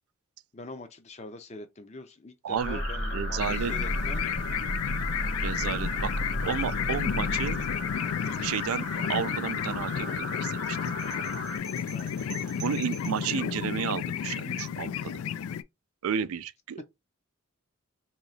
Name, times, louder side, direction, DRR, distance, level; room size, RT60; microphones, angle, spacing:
voice 1, 0.5-4.3 11.9-12.1, left 2 dB, 30° left, 0.5 m, -43 dB
voice 2, 2.4-2.8 3.1-3.7 5.4-6.1 6.4-7.6 8.4-10.8 12.6-15.1 16.0-16.8, right 7 dB, 85° right, 0.4 m, -32 dB
sound 1, 2.6-11.6, left 1 dB, 45° left, 1.0 m, -33 dB
sound 2, 3.4-15.6, left 8 dB, 80° left, 0.3 m, -32 dB
sound 3, 10.9-13.3, right 11 dB, 20° right, 0.4 m, -47 dB
3.1 x 2.8 x 3.9 m
head